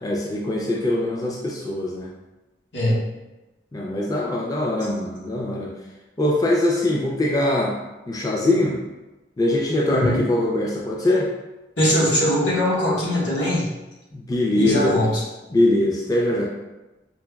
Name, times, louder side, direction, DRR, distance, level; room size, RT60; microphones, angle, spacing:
voice 1, 0.0-2.1 3.7-5.7 6.2-7.7 8.1-8.8 9.4-11.3 14.1-15.0 15.5-16.5, left 1 dB, 20° left, -2 dB, 0.3 m, -22 dB
voice 2, 9.9-10.2 11.8-13.7 14.6-15.2, left 1 dB, 85° left, -6 dB, 1.2 m, -21 dB
5.3 x 2.2 x 2.2 m, 1.0 s
head